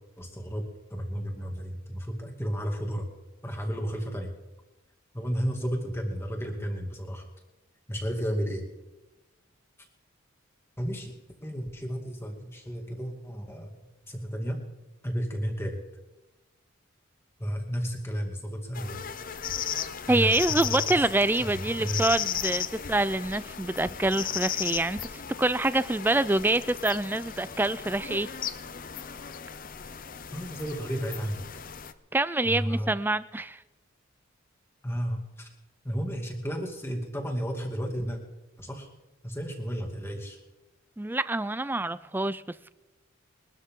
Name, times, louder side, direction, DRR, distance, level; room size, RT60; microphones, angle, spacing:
voice 1, 0.2-0.7 0.9-3.1 3.4-4.3 5.1-7.3 7.9-8.7 10.8-11.1 11.4-14.6 15.0-15.8 17.4-19.0 20.1-21.0 21.8-22.1 30.3-31.4 32.4-33.0 34.8-35.5 35.8-38.2 38.6-38.9 39.2-40.4, equal, 10° left, 1 dB, 2.4 m, -32 dB
sound 1, 18.7-31.9, left 9 dB, 40° left, 0.7 m, -36 dB
voice 2, 20.1-28.3 32.1-33.6 41.0-42.4, right 2 dB, 10° right, 16 dB, 0.4 m, -26 dB
23.0 x 12.5 x 3.8 m, 1.1 s
head